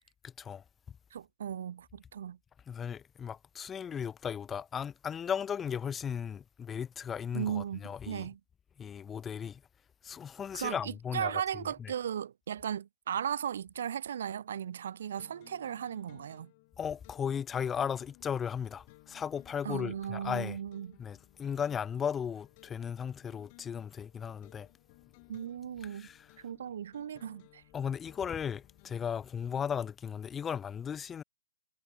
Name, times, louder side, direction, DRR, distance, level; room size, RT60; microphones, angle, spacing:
voice 1, 0.2-0.6 2.7-8.3 8.8-9.6 10.0-11.3 11.8-11.9 16.8-20.6 21.0-24.7 25.9-26.3 27.7-31.2, left 7 dB, 10° left, 0.6 m, -36 dB
voice 2, 1.1-2.4 7.3-8.4 10.5-16.5 19.6-20.9 25.3-26.1 26.4-27.6, right 9 dB, 55° right, 0.4 m, -36 dB
sound 1, 15.2-29.9, left 24 dB, 30° left, 2.5 m, -61 dB
hypercardioid pair, 170°, 0 cm